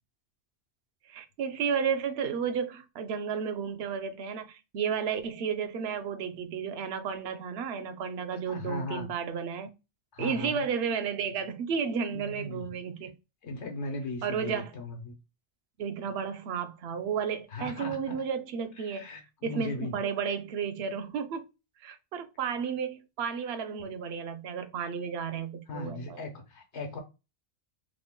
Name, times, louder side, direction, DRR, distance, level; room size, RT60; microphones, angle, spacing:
voice 1, 1.1-9.7 10.2-13.1 14.2-14.7 15.8-19.1 19.4-21.5 21.8-26.2, right 6 dB, 70° right, 0.8 m, -32 dB
voice 2, 8.3-9.1 10.1-10.6 12.1-12.6 13.4-15.1 17.5-18.2 18.8-20.0 25.7-27.0, left 2 dB, 80° left, 1.2 m, -38 dB
3.6 x 2.1 x 3.6 m
omnidirectional pair, 1.2 m